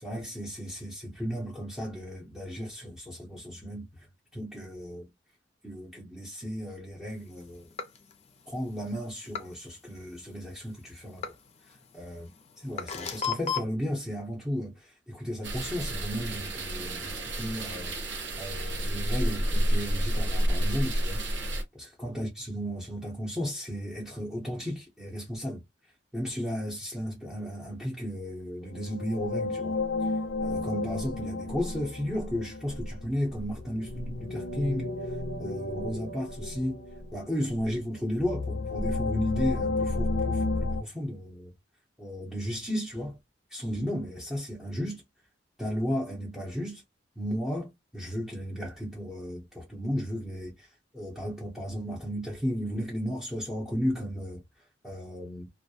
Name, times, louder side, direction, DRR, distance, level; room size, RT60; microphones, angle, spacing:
voice 1, 0.0-4.1 4.3-5.1 5.6-7.7 8.5-11.2 11.7-12.3 12.6-18.0 18.4-21.2 21.8-25.6 26.1-29.8 30.4-36.8 37.1-41.5 42.0-43.2 43.5-45.0 45.6-46.8 47.2-55.5, equal, 5° right, 0.7 m, -34 dB
sound 1, 7.2-9.6 10.1-13.6, left 6 dB, 35° left, 0.5 m, -36 dB
sound 2, 15.4-21.6, right 1 dB, 70° right, 0.8 m, -30 dB
sound 3, 28.7-40.8, left 2 dB, 85° left, 0.5 m, -32 dB
2.3 x 2.1 x 2.6 m
head